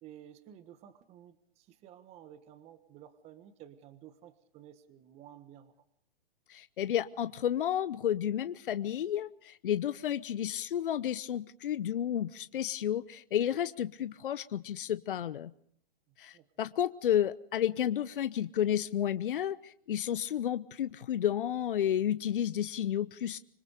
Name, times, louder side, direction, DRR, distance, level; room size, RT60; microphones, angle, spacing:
voice 1, 0.0-5.7 16.1-16.5, right 10 dB, 20° right, 11 dB, 1.4 m, -53 dB
voice 2, 6.5-15.5 16.2-23.4, left 10 dB, 60° left, 13 dB, 0.9 m, -31 dB
26.0 x 25.0 x 5.1 m, 0.66 s
hypercardioid pair, 140°, 29 cm